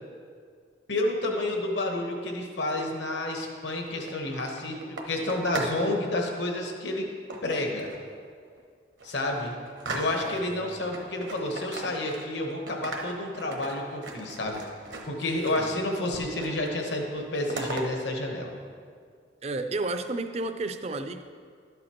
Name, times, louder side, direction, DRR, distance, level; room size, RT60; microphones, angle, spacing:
voice 1, 0.9-4.8 5.1-7.0 7.4-7.9 9.0-9.5 9.9-14.6 15.1-18.5, left 1 dB, 70° left, 2 dB, 1.0 m, -30 dB
sound 1, 3.9-5.8 6.1-6.5 7.3-8.1 8.6-8.7 9.0-10.5 10.9-12.4 12.7-15.8 16.1-16.7 17.0-17.9, right 2 dB, 80° right, 1.0 m, -38 dB
voice 2, 10.2-11.0 15.6-15.8 19.4-21.2, right 2 dB, 35° right, 9 dB, 0.4 m, -33 dB
12.0 x 7.9 x 2.9 m, 2.1 s
head